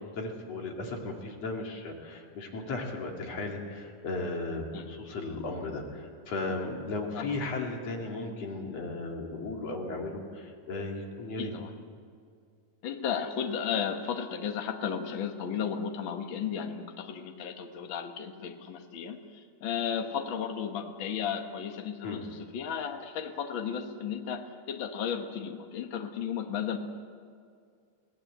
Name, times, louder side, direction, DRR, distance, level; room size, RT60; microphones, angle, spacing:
voice 1, 0.0-11.5 22.0-22.2, left 2 dB, 45° left, 1 dB, 3.1 m, -36 dB
voice 2, 11.4-11.7 12.8-26.8, left 7 dB, 75° left, 5 dB, 1.1 m, -34 dB
24.0 x 18.0 x 8.0 m, 2.2 s
omnidirectional pair, 4.4 m